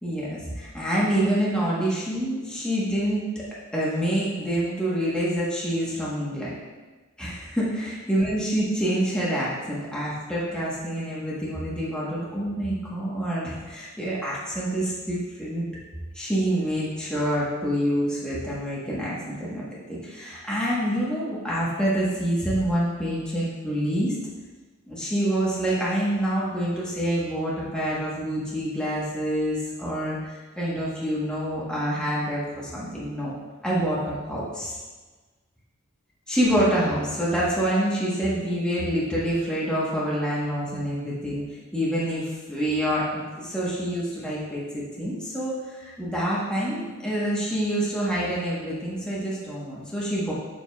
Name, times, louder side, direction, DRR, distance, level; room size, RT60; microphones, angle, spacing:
voice 1, 0.0-3.4 3.7-6.5 7.2-15.7 16.1-19.6 19.9-24.1 24.9-33.3 33.6-34.8 36.3-41.4 41.7-50.3, equal, 5° left, -8 dB, 1.1 m, -27 dB
6.9 x 6.6 x 2.3 m, 1.3 s
head